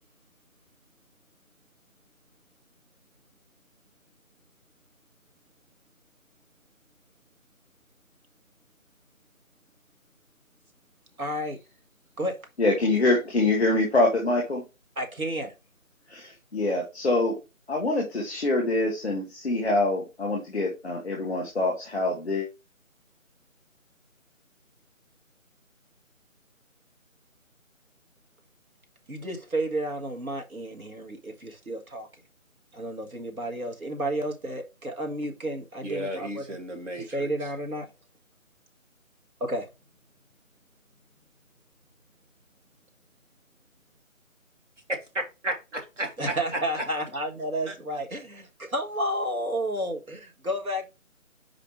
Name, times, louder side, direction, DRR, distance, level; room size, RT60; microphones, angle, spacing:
voice 1, 11.2-11.6 12.2-12.4 15.0-15.5 29.1-32.1 32.7-36.6 37.0-37.9 39.4-39.7 46.2-50.9, right 1 dB, 90° right, 1.7 m, -31 dB
voice 2, 12.6-14.6 16.1-17.4 17.7-22.5, left 2 dB, ahead, 0.9 m, -25 dB
voice 3, 35.8-37.3 44.9-45.0 45.4-46.8 47.7-47.8, right 1 dB, 60° right, 2.2 m, -33 dB
5.0 x 4.9 x 4.5 m
figure-of-eight pair, 165°, 41 cm